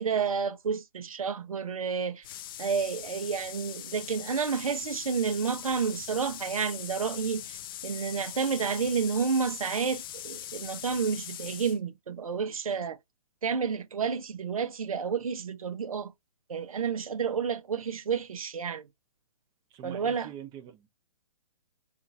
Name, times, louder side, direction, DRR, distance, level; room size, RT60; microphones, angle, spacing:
voice 1, 0.0-2.2 2.6-7.6 7.8-13.0 13.4-16.1 16.5-18.9 19.8-20.3, right 6 dB, 75° right, 0.6 m, -30 dB
sound 1, 2.2-11.8, left 11 dB, 40° left, 0.4 m, -41 dB
voice 2, 19.7-20.9, right 10 dB, 20° right, 0.7 m, -44 dB
3.7 x 2.4 x 2.5 m
figure-of-eight pair, 125°, 18 cm